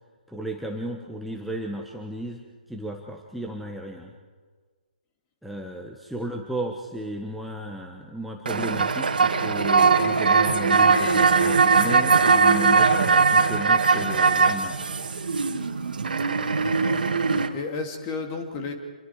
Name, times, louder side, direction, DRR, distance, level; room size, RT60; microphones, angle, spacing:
voice 1, 0.3-2.4 2.7-4.1 5.4-14.8, right 1 dB, ahead, 0 dB, 1.4 m, -34 dB
sound 1, 8.5-17.5, right 4 dB, 70° right, 2.1 m, -20 dB
voice 2, 16.5-18.7, left 4 dB, 25° left, 4 dB, 3.1 m, -34 dB
27.5 x 22.5 x 5.0 m, 1.5 s
figure-of-eight pair, 140°, 5 cm